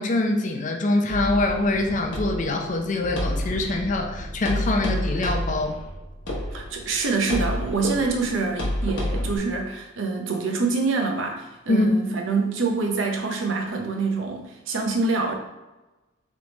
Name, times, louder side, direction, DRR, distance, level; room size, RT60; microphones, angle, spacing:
voice 1, 0.0-5.8 11.7-11.9, left 2 dB, 40° left, 3 dB, 0.5 m, -24 dB
sound 1, 1.1-9.4, left 1 dB, 70° left, 1.0 m, -30 dB
voice 2, 6.5-15.3, right 4 dB, 80° right, 2 dB, 0.7 m, -26 dB
3.4 x 3.1 x 4.0 m, 1.1 s
head